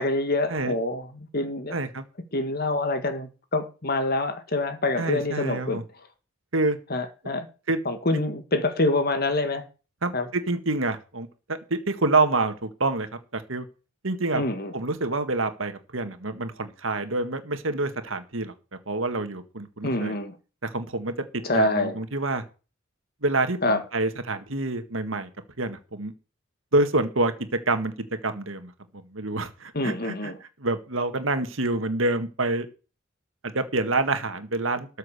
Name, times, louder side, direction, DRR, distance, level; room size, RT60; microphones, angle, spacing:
voice 1, 0.0-1.8 2.3-5.8 6.9-7.5 7.9-9.6 10.1-10.3 14.3-14.7 19.8-20.4 21.4-22.0 23.6-23.8 29.7-30.4, left 2 dB, 50° left, 1.9 m, -26 dB
voice 2, 1.7-2.0 5.0-5.8 6.5-6.8 7.7-7.8 10.0-13.1 13.3-13.7 14.0-14.4 14.7-18.5 18.9-20.1 20.6-21.1 21.5-22.4 23.2-23.6 23.9-25.3 25.6-26.1 26.7-27.9 28.2-28.7 29.1-30.3 30.6-32.7 33.5-34.9, right 2 dB, 75° right, 1.9 m, -27 dB
13.5 x 6.6 x 6.6 m
head